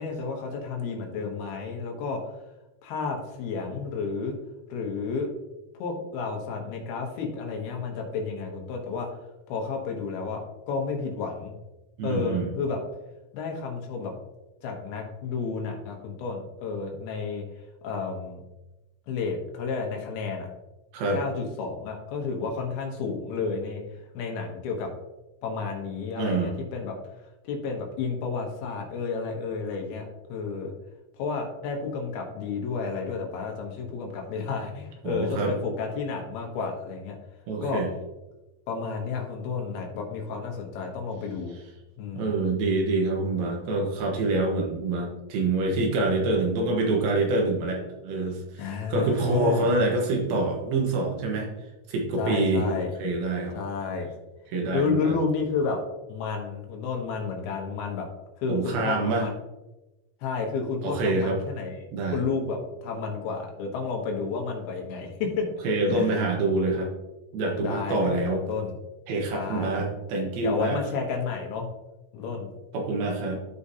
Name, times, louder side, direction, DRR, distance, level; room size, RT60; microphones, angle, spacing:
voice 1, 0.0-2.3 2.8-4.3 4.7-5.3 5.8-9.1 9.5-11.6 12.0-12.8 13.3-14.1 14.6-17.4 17.8-18.4 19.1-20.5 21.1-23.8 24.1-24.9 25.4-27.0 27.5-30.7 31.2-37.2 37.6-37.8 38.7-41.6 42.0-42.4 48.6-49.7 52.2-52.9 53.5-54.1 54.7-55.8 56.1-58.1 58.4-59.4 60.2-61.9 62.1-65.5 65.9-66.2 67.6-68.7 69.3-69.7 70.4-71.7 72.1-72.5, left 5 dB, 80° left, 2 dB, 3.2 m, -31 dB
voice 2, 12.0-12.5 20.9-21.2 26.2-26.5 35.0-35.5 37.5-37.9 42.1-51.5 51.9-52.7 53.0-53.6 54.5-55.2 58.5-59.3 60.8-61.4 61.9-62.2 65.6-66.9 67.3-68.4 69.1-70.8 72.7-73.4, right 2 dB, 75° right, 1 dB, 3.0 m, -26 dB
13.0 x 4.9 x 2.8 m, 1.0 s
omnidirectional pair, 4.5 m